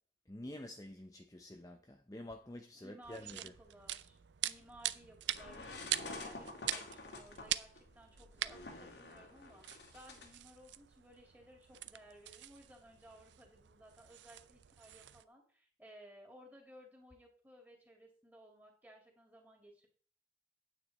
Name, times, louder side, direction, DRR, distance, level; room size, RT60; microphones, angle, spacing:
voice 1, 0.3-3.5, left 1 dB, 20° left, 0.7 m, -48 dB
voice 2, 2.7-19.9, equal, 10° right, 2.5 m, -59 dB
sound 1, 3.0-15.2, right 13 dB, 90° right, 0.5 m, -44 dB
sound 2, 5.3-10.3, left 3 dB, 80° left, 2.1 m, -48 dB
9.5 x 8.8 x 4.2 m
head